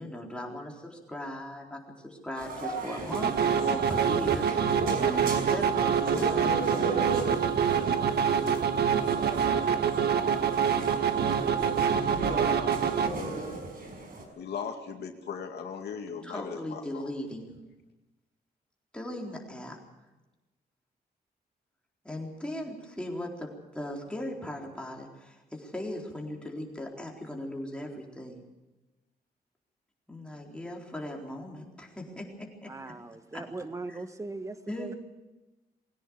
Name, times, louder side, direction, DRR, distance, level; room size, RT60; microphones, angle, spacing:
voice 1, 0.0-6.5 16.2-17.6 18.9-19.8 22.0-28.4 30.1-33.0 33.3-33.4 33.9-34.0 34.7-35.0, left 1 dB, 5° left, -1 dB, 4.1 m, -38 dB
sound 1, 2.4-14.2, right 2 dB, 60° right, 5.5 m, -36 dB
sound 2, 3.1-13.1, right 7 dB, 75° right, 1.4 m, -26 dB
voice 2, 14.4-17.1, left 6 dB, 80° left, 4 dB, 2.3 m, -38 dB
voice 3, 32.7-35.0, right 2 dB, 20° right, 9 dB, 1.3 m, -39 dB
22.0 x 17.5 x 7.2 m, 1.1 s
wide cardioid pair, 140°, 17 cm